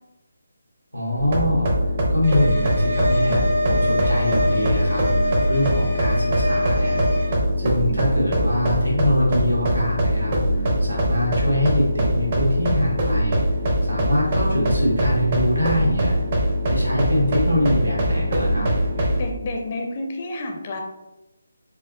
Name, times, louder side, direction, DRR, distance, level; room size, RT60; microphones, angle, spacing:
voice 1, 0.9-16.2 16.7-18.7, left 1 dB, 90° right, -4 dB, 1.2 m, -24 dB
sound 1, 1.2-19.3, equal, 40° right, 0.6 m, -22 dB
sound 2, 2.2-7.3, left 1 dB, 60° right, 0.9 m, -25 dB
voice 2, 19.0-20.8, left 2 dB, 35° left, 2 dB, 0.4 m, -30 dB
4.3 x 2.3 x 2.3 m, 1.0 s
figure-of-eight pair, 150°, 0 cm